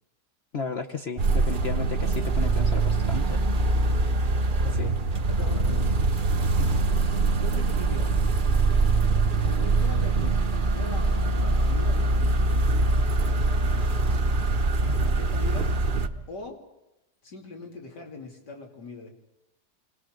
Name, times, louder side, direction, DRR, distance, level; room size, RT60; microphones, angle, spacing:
voice 1, 0.5-3.6 4.8-4.9 6.6-6.8, left 4 dB, 45° left, 2 dB, 1.0 m, -34 dB
sound 1, 1.2-16.1, right 3 dB, 35° right, 1.0 m, -23 dB
voice 2, 4.6-5.0 5.3-6.0 7.4-8.3 9.5-10.4 10.7-11.1 11.3-12.7 13.3-13.9 14.9-15.7 16.3-16.6 17.2-19.1, left 3 dB, 85° left, 2 dB, 3.5 m, -42 dB
26.5 x 19.5 x 6.5 m, 0.91 s
omnidirectional pair, 1.8 m